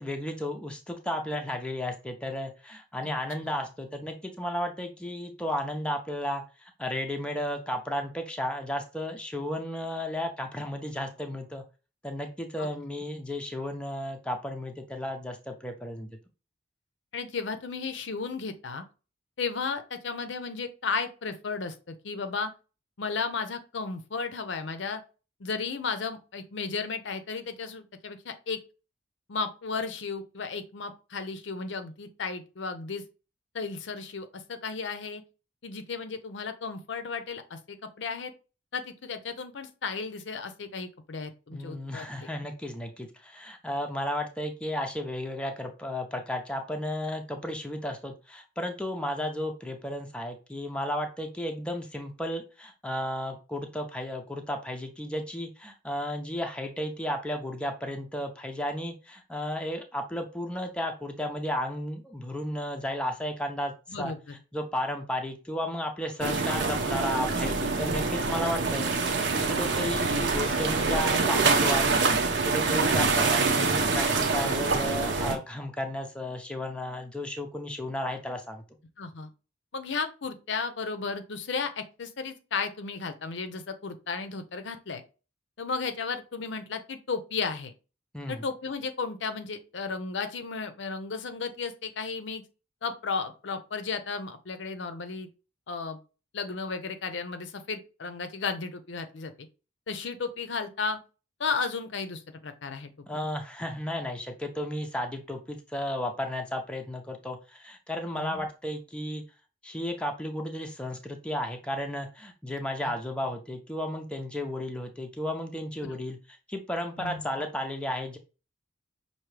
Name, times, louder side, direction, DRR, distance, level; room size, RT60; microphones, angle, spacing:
voice 1, 0.0-11.6 12.0-16.1 41.5-68.9 69.3-78.6 88.1-88.4 103.1-109.2 109.6-118.2, left 1 dB, 5° left, 3 dB, 0.5 m, -33 dB
voice 2, 17.1-18.8 19.4-22.5 23.0-25.0 25.4-28.6 29.3-33.0 33.5-35.2 35.6-38.3 38.7-42.3 63.9-64.4 79.0-79.3 79.7-85.0 85.6-87.7 88.3-92.4 92.8-95.3 95.7-96.0 96.3-99.3 99.9-101.0 101.4-103.1 108.1-108.4 112.8-113.0 115.8-115.9 117.0-117.3, left 4 dB, 65° left, 9 dB, 0.6 m, -34 dB
sound 1, 66.2-75.4, right 4 dB, 60° right, 0.7 m, -25 dB
5.9 x 2.6 x 3.2 m, 0.32 s
head